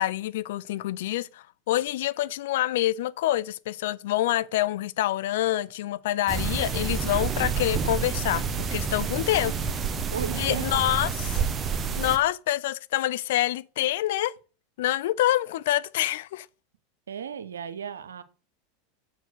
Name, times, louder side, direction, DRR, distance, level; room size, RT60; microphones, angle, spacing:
voice 1, 0.0-8.4 8.7-9.6 10.4-11.4 12.0-14.3 14.8-16.5, left 14 dB, 70° left, 0.4 m, -26 dB
sound 1, 6.3-12.2, right 6 dB, 25° right, 1.0 m, -28 dB
voice 2, 10.1-10.7 17.1-18.2, right 7 dB, 85° right, 0.8 m, -34 dB
7.2 x 4.7 x 6.6 m
hypercardioid pair, 95°, 0 cm